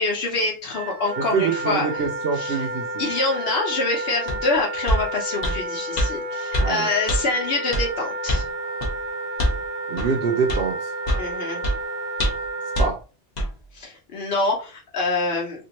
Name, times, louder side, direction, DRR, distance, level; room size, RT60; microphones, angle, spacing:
voice 1, 0.0-1.9 2.3-2.7 3.0-8.4 11.2-11.6 13.7-15.7, left 3 dB, 75° left, -1 dB, 1.0 m, -25 dB
Wind instrument woodwind instrument, 0.7-12.9, right 2 dB, 40° right, 0.9 m, -31 dB
voice 2, 1.3-3.1 6.6-6.9 9.9-10.9 12.8-13.0, right 5 dB, 75° right, 2 dB, 0.8 m, -25 dB
sound 1, 4.3-4.4 4.9-5.0 5.4-5.6 6.0-6.1 6.5-6.7 7.1-7.2 7.7-7.9 8.3-8.5 8.8-8.9 9.4-9.6 10.0-10.1 10.5-10.6 11.1-11.3 11.6-11.8 12.2-12.5 12.8-12.9 13.4-13.5, equal, 45° left, 0.9 m, -23 dB
2.9 x 2.6 x 2.9 m, 0.34 s
omnidirectional pair, 1.0 m